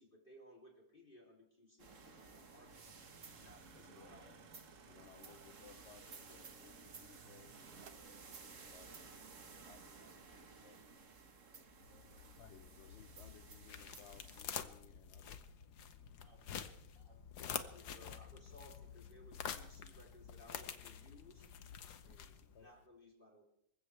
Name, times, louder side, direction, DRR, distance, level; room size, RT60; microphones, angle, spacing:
voice 1, 0.0-2.9 3.4-4.3 17.5-21.5 22.1-23.4, left 1 dB, 30° left, -2 dB, 3.4 m, -61 dB
sound 1, 1.8-14.4, right 4 dB, 50° right, 1.8 m, -56 dB
sound 2, 3.0-8.0, right 8 dB, 70° right, 1.4 m, -65 dB
voice 2, 4.8-10.8 12.5-15.5, left 7 dB, 50° left, 8 dB, 1.1 m, -63 dB
sound 3, 11.7-22.7, left 8 dB, 75° left, 1.6 m, -48 dB
voice 3, 12.9-13.3 16.2-17.4 18.5-18.6, right 1 dB, 15° right, -3 dB, 6.4 m, -73 dB
26.5 x 15.5 x 3.4 m, 0.75 s
omnidirectional pair, 1.7 m